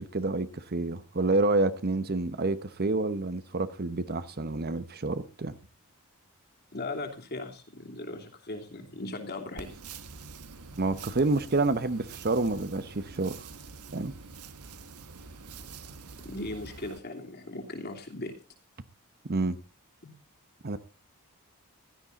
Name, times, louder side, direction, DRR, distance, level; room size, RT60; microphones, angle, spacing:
voice 1, 0.0-5.6 10.8-13.5 13.9-14.1 19.3-19.6 20.6-20.8, right 2 dB, 45° right, 0.9 m, -28 dB
voice 2, 6.7-9.7 16.2-18.3 20.0-20.1, left 2 dB, 45° left, 3.0 m, -38 dB
sound 1, 9.6-17.0, right 4 dB, 90° right, 1.3 m, -46 dB
15.5 x 12.5 x 4.1 m
head